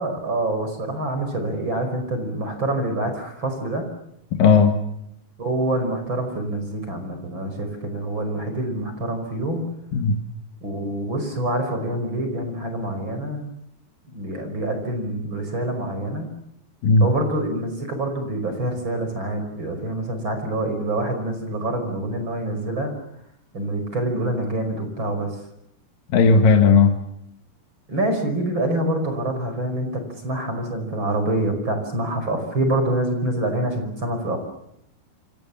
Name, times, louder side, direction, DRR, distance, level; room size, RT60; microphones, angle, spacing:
voice 1, 0.0-3.8 5.4-9.7 10.6-13.5 14.1-16.3 17.0-22.9 23.5-25.3 27.9-34.4, right 1 dB, 25° right, 6 dB, 5.7 m, -26 dB
voice 2, 4.4-4.7 9.9-10.2 16.8-17.1 26.1-26.9, left 4 dB, 60° left, 5 dB, 3.1 m, -15 dB
28.0 x 27.0 x 7.2 m, 0.78 s
omnidirectional pair, 4.9 m